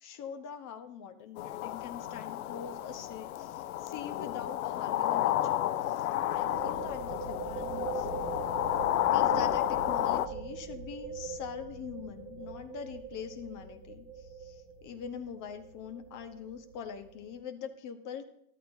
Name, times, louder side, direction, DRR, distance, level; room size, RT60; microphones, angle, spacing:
voice 1, 0.0-8.1 9.1-18.2, left 7 dB, 45° left, 7 dB, 1.2 m, -43 dB
sound 1, 1.4-10.3, left 13 dB, 85° left, 0.6 m, -31 dB
sound 2, 2.9-3.2 3.4-3.5 6.0-17.4, right 6 dB, 65° right, 1.7 m, -42 dB
13.0 x 12.0 x 2.7 m, 0.74 s
hypercardioid pair, 90°, 42 cm